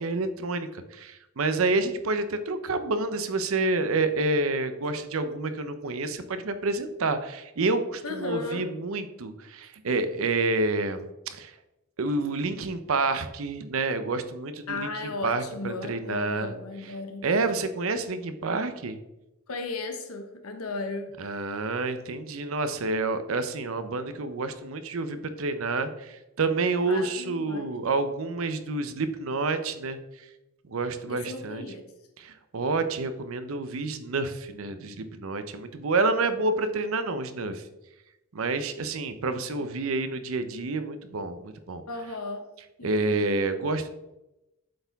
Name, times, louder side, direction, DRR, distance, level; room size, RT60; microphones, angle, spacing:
voice 1, 0.0-11.5 12.0-16.5 17.2-19.0 21.2-30.0 30.7-31.6 32.2-37.6 38.3-41.8 42.8-43.9, right 3 dB, 70° right, 10 dB, 0.6 m, -28 dB
voice 2, 8.0-8.7 14.7-17.3 19.5-21.1 26.9-27.7 31.1-31.8 41.9-42.5 42.8-43.5, left 3 dB, 90° left, 6 dB, 1.0 m, -35 dB
7.6 x 4.5 x 3.5 m, 0.93 s
head